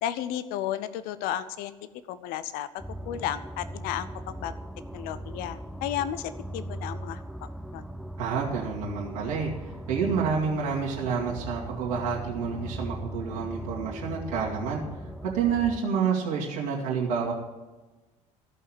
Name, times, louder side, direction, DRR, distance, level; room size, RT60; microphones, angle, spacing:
voice 1, 0.0-1.7 2.1-2.7 3.1-4.5 4.9-7.8, left 11 dB, 55° left, 14 dB, 0.6 m, -33 dB
sound 1, 2.8-15.8, right 1 dB, ahead, 0.7 m, -39 dB
voice 2, 8.2-14.8 15.2-17.3, right 6 dB, 70° right, -3 dB, 2.3 m, -28 dB
15.5 x 5.6 x 7.6 m, 1.2 s
figure-of-eight pair, 65°, 18 cm